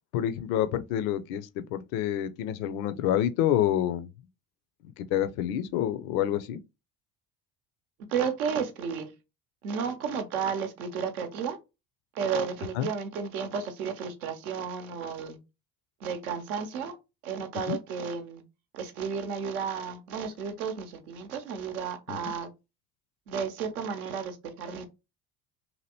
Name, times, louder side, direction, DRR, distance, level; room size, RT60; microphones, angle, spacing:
voice 1, 0.1-4.1 4.8-6.6 12.8-12.9 17.7-17.8 22.1-22.2, left 11 dB, 70° left, 0.5 m, -28 dB
voice 2, 8.1-9.1 9.6-11.6 12.1-15.4 16.0-17.0 17.2-18.4 18.7-22.5 23.3-24.8, right 6 dB, 80° right, 0.7 m, -32 dB
2.8 x 2.6 x 2.8 m
hypercardioid pair, 55°, 43 cm